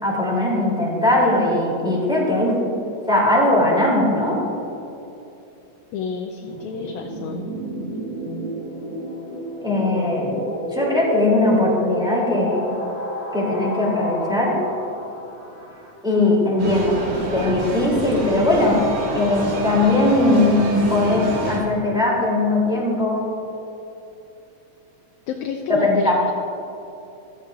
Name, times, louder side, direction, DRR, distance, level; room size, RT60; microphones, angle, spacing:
voice 1, 0.0-2.7 3.1-4.4 9.6-10.3 10.7-12.6 13.3-14.6 16.0-17.0 17.3-18.8 19.1-23.3 25.7-26.3, left 2 dB, ahead, -5 dB, 2.2 m, -19 dB
voice 2, 5.9-7.5 25.3-26.3, left 6 dB, 80° left, 2 dB, 2.0 m, -29 dB
sound 1, 6.5-15.9, equal, 25° right, 1.5 m, -30 dB
sound 2, 16.6-21.6, right 1 dB, 80° right, 3.2 m, -28 dB
15.0 x 13.0 x 2.4 m, 2.9 s
omnidirectional pair, 3.4 m